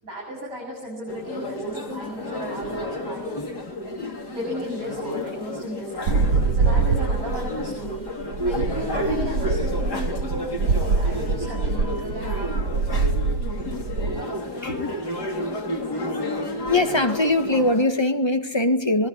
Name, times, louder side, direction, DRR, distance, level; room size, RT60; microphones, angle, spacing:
voice 1, 0.0-3.4 4.3-6.2 6.5-12.8 14.7-14.8 15.4-15.5, equal, 55° right, 8.2 m, -34 dB
sound 1, 1.1-17.9, left 1 dB, 85° left, 4.1 m, -31 dB
sound 2, 6.1-14.2, right 4 dB, 75° right, 1.7 m, -24 dB
voice 2, 16.7-19.1, left 2 dB, 15° left, 1.8 m, -22 dB
26.0 x 21.0 x 9.8 m
omnidirectional pair, 1.7 m